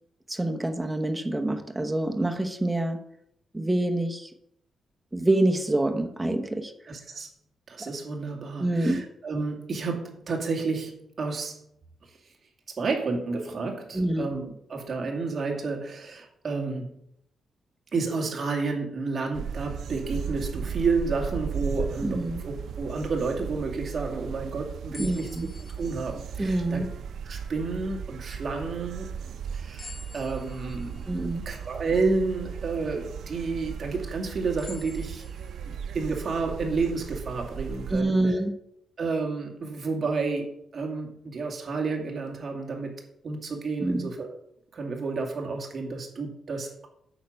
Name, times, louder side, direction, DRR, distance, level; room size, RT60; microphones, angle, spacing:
voice 1, 0.3-3.0 3.5-4.3 5.1-6.7 7.8-7.9 8.6-9.1 13.9-14.3 22.0-22.4 25.0-25.5 26.4-26.9 31.1-31.4 37.9-38.5 43.8-44.1, right 1 dB, 10° right, 5 dB, 1.0 m, -26 dB
voice 2, 6.9-7.3 7.7-11.6 12.7-16.9 17.9-25.3 25.6-26.8 27.2-31.1 31.5-35.2 35.7-38.2 39.0-42.9 43.2-44.4 44.7-46.9, right 4 dB, 40° right, 0 dB, 2.2 m, -31 dB
sound 1, 19.3-38.0, right 7 dB, 70° right, 0.5 m, -36 dB
sound 2, 24.9-27.3 27.9-28.0 29.8-33.1 33.7-33.8 34.6-37.6, left 4 dB, 45° left, 1.4 m, -50 dB
9.0 x 6.5 x 5.4 m, 0.74 s
cardioid pair, 145°, 0 cm